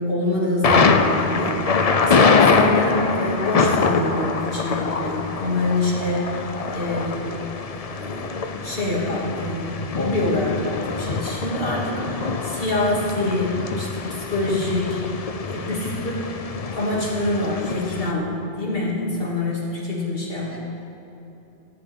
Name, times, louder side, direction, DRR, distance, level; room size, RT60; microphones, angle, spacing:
voice 1, 0.0-7.4 7.8-15.0 15.5-15.9 16.2-16.3 16.7-20.6, left 1 dB, 60° left, -6 dB, 3.0 m, -26 dB
Thunder, 0.6-18.1, left 4 dB, 40° left, 0.6 m, -24 dB
voice 2, 15.8-16.2 20.5-20.6, left 1 dB, 10° right, -4 dB, 2.1 m, -36 dB
14.0 x 6.1 x 9.1 m, 3.0 s
omnidirectional pair, 1.1 m